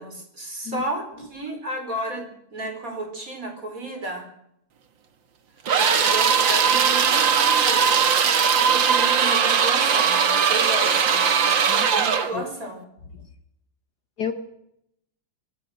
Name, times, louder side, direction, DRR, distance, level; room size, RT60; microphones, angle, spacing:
voice 1, 0.0-4.3 5.7-8.1 8.6-11.2 11.7-12.8, right 1 dB, 40° right, 5 dB, 5.2 m, -33 dB
voice 2, 0.7-0.8 11.6-11.9 12.3-12.4 14.2-14.3, left 8 dB, 50° left, 8 dB, 1.8 m, -30 dB
sound 1, 5.7-12.3, right 7 dB, 65° right, 2.3 m, -19 dB
25.5 x 19.0 x 6.5 m, 0.77 s
omnidirectional pair, 2.3 m